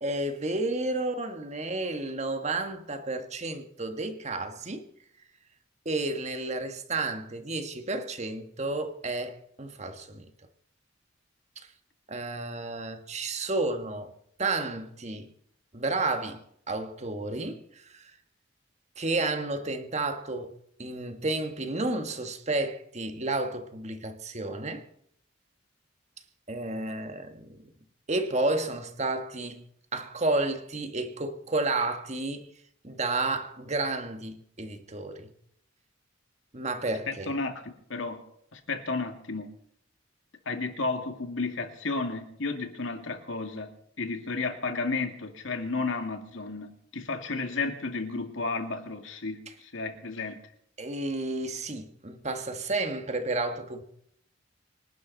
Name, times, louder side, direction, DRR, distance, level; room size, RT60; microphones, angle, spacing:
voice 1, 0.0-4.9 5.8-10.3 12.1-14.1 14.4-15.3 15.7-18.1 19.0-24.8 26.5-27.7 28.1-29.6 29.9-32.5 32.8-35.3 36.5-37.3 50.8-53.8, right 2 dB, 35° right, 1.6 m, -31 dB
voice 2, 37.1-37.5 37.9-38.2 38.5-39.5 40.5-43.7 44.0-50.4, left 3 dB, 70° left, 2.3 m, -32 dB
25.5 x 11.5 x 4.1 m
head